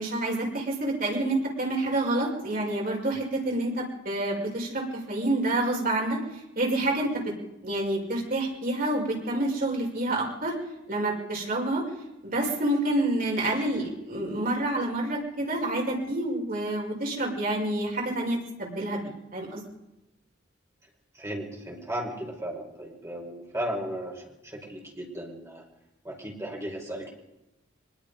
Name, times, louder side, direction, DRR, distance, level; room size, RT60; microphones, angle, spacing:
voice 1, 0.0-6.2 6.6-7.3 7.6-10.6 10.9-11.8 12.2-19.6, right 1 dB, 50° right, -1 dB, 5.9 m, -28 dB
voice 2, 21.1-25.6 26.0-27.1, equal, 15° right, 0 dB, 4.9 m, -35 dB
24.0 x 21.0 x 5.3 m, 0.94 s
head